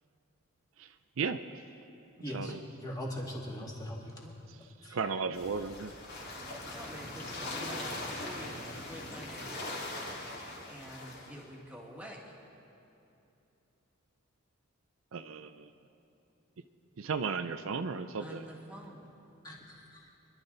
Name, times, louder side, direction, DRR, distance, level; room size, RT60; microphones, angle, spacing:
voice 1, 0.8-1.4 2.3-2.6 4.9-5.9 15.1-15.7 17.0-18.4, right 5 dB, 70° right, 10 dB, 0.5 m, -35 dB
voice 2, 2.2-2.5 2.8-4.2 4.8-5.0 19.4-20.1, equal, 15° left, -3 dB, 2.3 m, -40 dB
sound 1, 5.3-11.4, left 2 dB, 50° left, 2.8 m, -41 dB
voice 3, 6.4-9.5 10.7-12.4 18.2-19.1, equal, 5° right, -2 dB, 1.9 m, -48 dB
28.5 x 11.5 x 4.0 m, 2.7 s
head